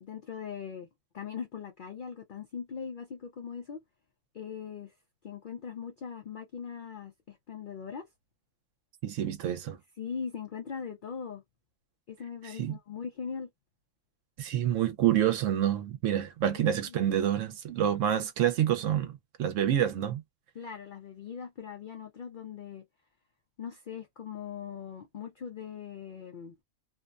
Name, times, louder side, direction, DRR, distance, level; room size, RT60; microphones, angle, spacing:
voice 1, 0.0-0.9 1.1-3.8 4.3-4.9 5.2-8.1 10.0-11.4 12.1-13.5 16.5-17.0 20.5-22.8 23.6-26.6, left 7 dB, 70° left, 0.4 m, -40 dB
voice 2, 9.0-9.8 12.6-12.8 14.4-20.2, right 10 dB, 70° right, 0.9 m, -27 dB
2.6 x 2.1 x 2.3 m
omnidirectional pair, 1.4 m